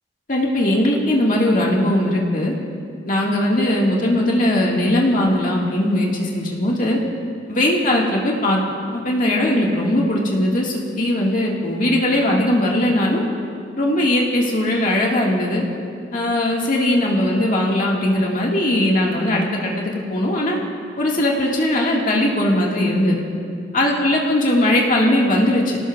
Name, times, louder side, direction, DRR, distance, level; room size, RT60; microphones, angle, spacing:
voice 1, 0.3-2.5 3.1-7.0 7.5-8.6 8.9-13.2 13.8-15.6 16.1-20.6 21.0-23.2 23.7-25.8, left 1 dB, 50° left, -2 dB, 1.9 m, -19 dB
27.5 x 18.0 x 2.5 m, 2.4 s
head